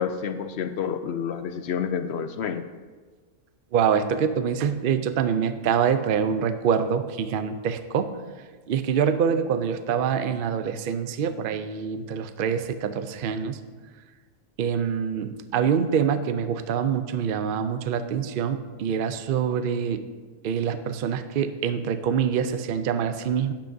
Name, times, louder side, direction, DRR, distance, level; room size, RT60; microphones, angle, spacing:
voice 1, 0.0-2.7, left 7 dB, 65° left, 9 dB, 0.7 m, -29 dB
voice 2, 3.7-8.2 8.7-13.6 14.6-20.1 20.4-23.5, right 7 dB, 55° right, 10 dB, 0.6 m, -25 dB
11.5 x 10.5 x 2.7 m, 1.4 s
omnidirectional pair, 1.4 m